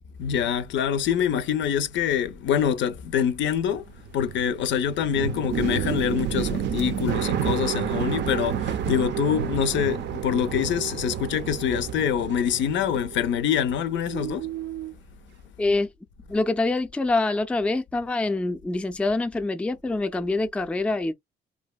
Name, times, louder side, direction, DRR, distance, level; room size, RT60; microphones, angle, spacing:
voice 1, 0.2-14.5, left 8 dB, 70° left, 0.4 m, -25 dB
sound 1, 3.7-13.8 14.1-14.9, right 8 dB, 60° right, 0.4 m, -30 dB
voice 2, 15.6-15.9 16.3-21.1, left 2 dB, 5° left, 0.3 m, -25 dB
2.7 x 2.2 x 2.2 m
cardioid pair, 90°, 20 cm